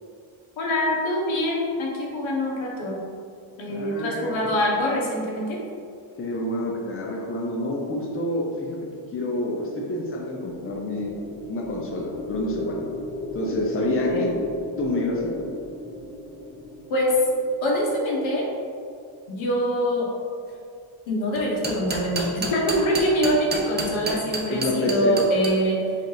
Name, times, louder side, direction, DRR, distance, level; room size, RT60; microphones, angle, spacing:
voice 1, 0.6-3.0 3.6-5.6 14.1-14.3 16.9-17.2 17.6-18.5 19.3-20.1 21.1-25.8, equal, 70° left, -2 dB, 1.1 m, -24 dB
voice 2, 3.7-4.5 6.2-8.8 9.1-11.1 11.5-12.8 13.3-14.3 14.8-15.5 24.5-25.2, left 1 dB, 25° left, -2 dB, 0.7 m, -28 dB
sound 1, 10.2-18.5, left 1 dB, 10° left, 0.3 m, -36 dB
sound 2, 21.4-25.5, right 3 dB, 20° right, 0.6 m, -29 dB
3.8 x 3.6 x 3.9 m, 2.3 s
cardioid pair, 95°, 49 cm